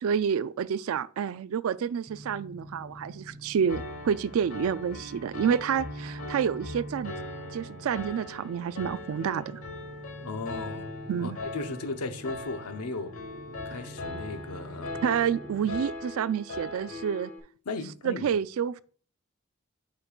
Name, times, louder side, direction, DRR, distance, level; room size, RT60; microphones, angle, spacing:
voice 1, 0.0-7.1 7.5-9.6 11.1-11.4 15.0-17.3 18.0-18.8, right 7 dB, 70° right, 0.3 m, -29 dB
sound 1, 2.1-15.7, equal, 25° right, 0.7 m, -47 dB
Piano, 3.7-17.4, left 2 dB, 70° left, 1.1 m, -40 dB
voice 2, 10.2-13.1 13.7-15.0 17.7-18.3, left 3 dB, 85° left, 0.8 m, -36 dB
8.8 x 5.1 x 2.3 m
head